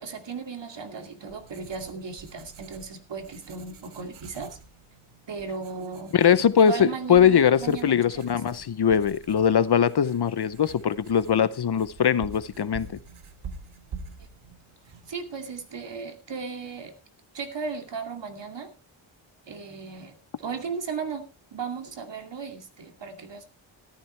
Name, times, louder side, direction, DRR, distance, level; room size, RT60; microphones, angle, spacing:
voice 1, 0.0-4.6 5.3-6.1 6.6-8.2 14.2-14.3 15.1-16.9 17.3-18.7 19.5-21.2 21.5-23.5, right 5 dB, 60° right, 2.5 m, -36 dB
Writing, 0.9-15.7, right 5 dB, 85° right, 1.8 m, -47 dB
voice 2, 6.1-13.0, left 8 dB, 55° left, 0.7 m, -21 dB
14.0 x 13.0 x 3.3 m
wide cardioid pair, 145°, 49 cm